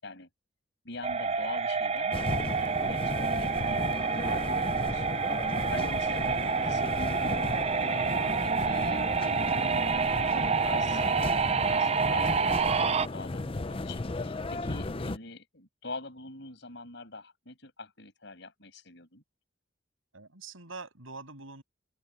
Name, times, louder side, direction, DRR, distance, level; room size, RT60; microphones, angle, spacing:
voice 1, 0.8-2.2 2.6-3.9 4.2-5.2 5.7-8.3 8.6-19.2, left 2 dB, 60° left, 7.5 m, -44 dB
sound 1, 1.0-13.1, right 5 dB, 30° right, 0.5 m, -28 dB
sound 2, 2.1-15.2, left 2 dB, 30° left, 0.6 m, -35 dB
voice 2, 20.1-21.6, right 3 dB, 90° right, 7.2 m, -45 dB
head